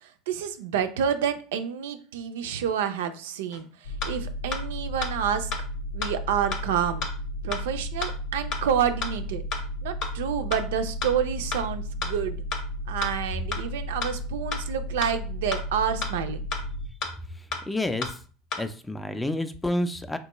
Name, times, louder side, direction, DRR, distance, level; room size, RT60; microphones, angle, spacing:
voice 1, 0.0-5.5 5.9-7.1 7.4-9.4 9.8-12.4 12.9-16.4, right 8 dB, 85° right, 9 dB, 0.4 m, -29 dB
sound 1, 3.5-3.6 4.0-4.1 4.5-4.6 5.0-5.1 5.5-5.6 6.0-6.1 6.5-6.6 7.0-7.1 7.5-7.6 8.0-8.1 8.5-8.6 9.0-9.1 9.5-9.6 10.0-10.1 10.5-10.6 11.0-11.1 11.5-11.6 12.0-12.1 12.5-12.6 13.0-13.1 13.5-13.6 14.0-14.1 14.5-14.6 15.0-15.1 15.5-15.6 16.0-16.1 16.5-16.6 17.0-17.1 17.5-17.6 18.0-18.1 18.5-18.6, left 4 dB, 60° left, 0.7 m, -31 dB
sound 2, 3.8-16.9, equal, 85° left, 0.3 m, -34 dB
voice 2, 17.3-18.2 18.6-20.2, left 1 dB, 10° left, 9 dB, 0.3 m, -29 dB
3.7 x 2.2 x 2.9 m, 0.39 s
supercardioid pair, 105°, 0 cm